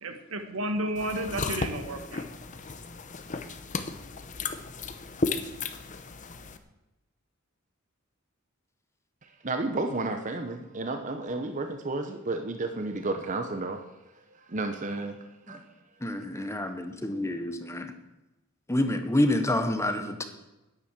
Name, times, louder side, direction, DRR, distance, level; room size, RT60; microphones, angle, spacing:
voice 1, 0.0-2.2, right 1 dB, 80° right, 6 dB, 1.6 m, -32 dB
sound 1, 1.0-6.6, left 3 dB, 35° left, 0.8 m, -34 dB
voice 2, 9.4-13.8 14.5-15.2 15.5-15.6 16.3-16.6, right 2 dB, 35° right, 6 dB, 0.8 m, -32 dB
voice 3, 16.0-17.9 18.7-20.2, left 1 dB, 15° left, 8 dB, 1.0 m, -27 dB
10.5 x 9.8 x 7.4 m, 1.0 s
head